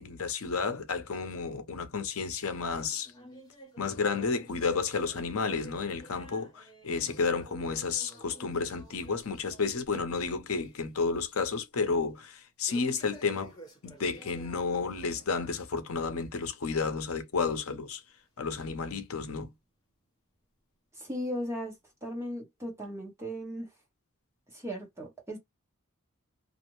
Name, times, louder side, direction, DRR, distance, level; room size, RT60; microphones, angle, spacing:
voice 1, 0.0-3.1 3.8-13.5 13.8-18.0 18.4-19.5, left 4 dB, 70° left, 0.7 m, -31 dB
sound 1, 2.7-10.2 10.5-10.9 11.2-11.3 12.7-15.3 15.7-15.9 16.6-16.7 17.6-17.7 18.5-18.6, right 2 dB, 20° left, 0.8 m, -53 dB
voice 2, 20.9-21.7 22.0-23.7 24.5-25.4, equal, 10° right, 0.9 m, -37 dB
2.5 x 2.1 x 2.9 m
head